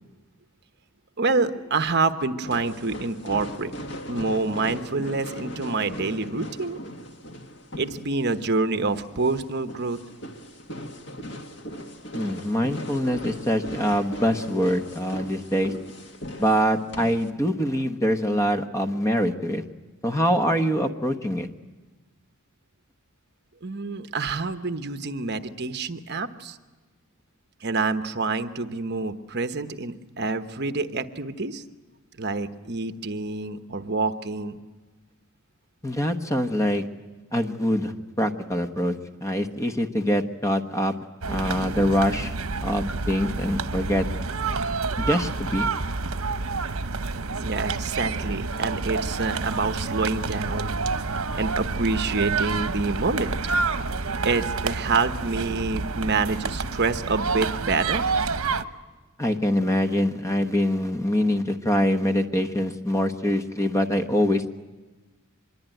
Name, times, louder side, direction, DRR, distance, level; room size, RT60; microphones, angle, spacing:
voice 1, 1.2-3.7 4.1-6.8 7.8-10.0 23.6-26.6 27.6-31.6 32.2-34.6 47.4-50.7 51.3-53.4 54.2-58.0, right 3 dB, 50° right, 9 dB, 1.1 m, -27 dB
sound 1, 2.4-17.3, equal, 55° left, 2.0 m, -38 dB
voice 2, 12.1-15.7 16.4-19.6 20.0-21.5 35.8-36.8 37.3-39.0 39.2-40.9 41.3-42.3 42.6-44.1 45.0-45.7 59.2-64.5, equal, 15° left, 6 dB, 1.1 m, -24 dB
sound 2, 41.2-58.6, right 4 dB, 80° right, 1.0 m, -28 dB
25.0 x 22.0 x 9.1 m, 1.3 s
head